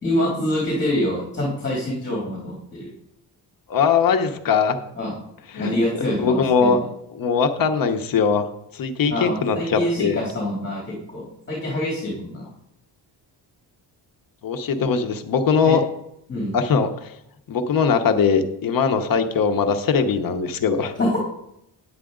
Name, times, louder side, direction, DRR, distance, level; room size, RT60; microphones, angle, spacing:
voice 1, 0.0-2.9 4.9-5.1 5.6-6.8 9.1-12.5 14.8-14.9 15.6-15.8 16.3-16.6 21.0-21.2, left 1 dB, 25° left, -3 dB, 2.7 m, -25 dB
voice 2, 3.7-4.8 5.5-5.8 6.2-6.8 7.1-8.5 8.7-10.2 14.4-15.8 16.5-17.1 17.5-20.9, left 5 dB, 55° left, 7 dB, 1.0 m, -20 dB
9.7 x 8.3 x 3.8 m, 0.79 s
cardioid pair, 140°, 42 cm